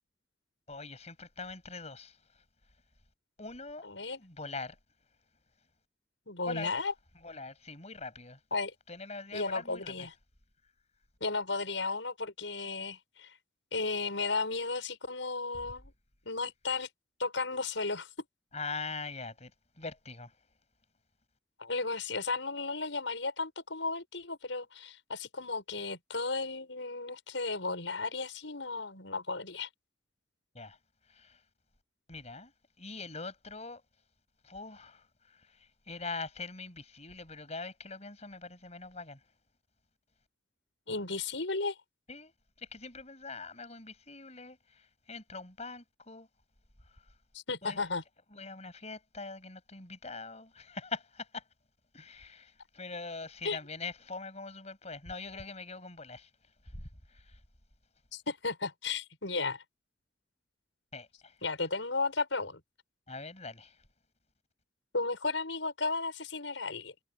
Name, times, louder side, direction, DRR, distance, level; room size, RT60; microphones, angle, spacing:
voice 1, 0.7-2.2 3.4-3.9 4.2-4.8 6.5-6.7 7.2-8.4 8.9-10.1 18.5-19.5 19.8-20.3 30.5-30.8 31.1-31.4 32.1-32.5 32.8-33.8 34.4-39.2 42.1-42.3 42.6-46.3 47.6-47.8 48.3-51.4 51.9-56.3 56.7-57.4 60.9-61.3 63.1-63.8, left 4 dB, 35° left, 7.6 m, -43 dB
voice 2, 3.8-4.2 6.3-6.9 8.5-8.7 9.3-10.1 11.2-13.3 13.7-15.9 16.3-16.9 17.2-18.1 21.6-29.7 40.9-41.8 47.3-48.0 53.4-53.6 58.1-59.6 61.4-62.6 64.9-66.9, left 3 dB, 90° left, 6.2 m, -34 dB
head